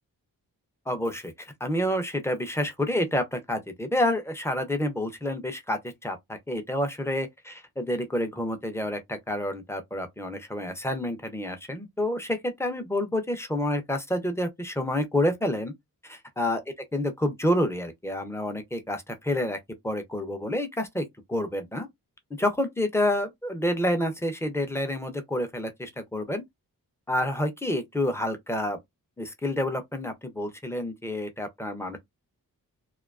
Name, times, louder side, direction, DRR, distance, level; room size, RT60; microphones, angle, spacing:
voice 1, 0.9-15.7 16.1-16.6 16.9-19.6 19.8-21.9 22.4-26.4 27.1-28.8 29.2-32.0, left 1 dB, 10° left, 0.4 m, -28 dB
2.5 x 2.2 x 2.3 m
wide cardioid pair, 175°, 35 cm